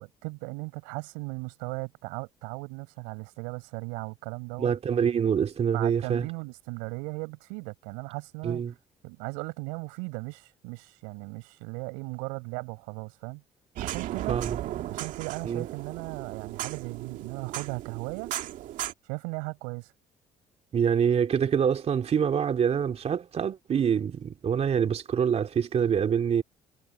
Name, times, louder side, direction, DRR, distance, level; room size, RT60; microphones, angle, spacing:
voice 1, 0.0-4.7 5.7-8.6 9.0-13.4 13.8-14.4 14.9-18.3 19.1-19.9, right 33 dB, 85° right, 7.4 m, -37 dB
voice 2, 4.6-6.3 8.4-8.7 14.3-14.6 15.4-15.7 20.7-26.4, right 7 dB, 50° right, 2.3 m, -25 dB
sound 1, 13.8-18.9, right 13 dB, 70° right, 2.4 m, -36 dB
supercardioid pair, 60°, 14 cm